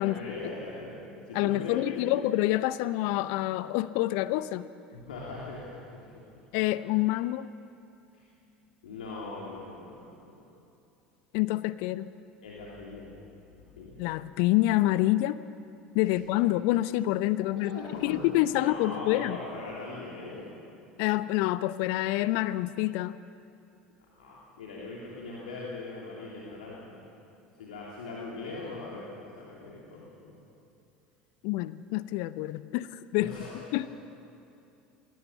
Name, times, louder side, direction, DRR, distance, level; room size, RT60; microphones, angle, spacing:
voice 1, 0.0-2.2 4.9-5.8 6.1-6.2 8.1-8.2 8.8-10.4 12.4-13.1 13.8-14.1 16.1-16.2 17.4-18.3 18.5-20.5 24.2-27.0 27.6-30.4 33.1-33.9, left 3 dB, 75° left, -5 dB, 3.1 m, -40 dB
voice 2, 1.3-4.7 6.5-7.5 11.3-12.1 14.0-15.4 15.9-19.4 21.0-23.2 31.4-33.3 33.7-33.9, left 16 dB, 60° left, 16 dB, 0.6 m, -27 dB
20.5 x 17.5 x 7.3 m, 2.7 s
figure-of-eight pair, 75°, 5 cm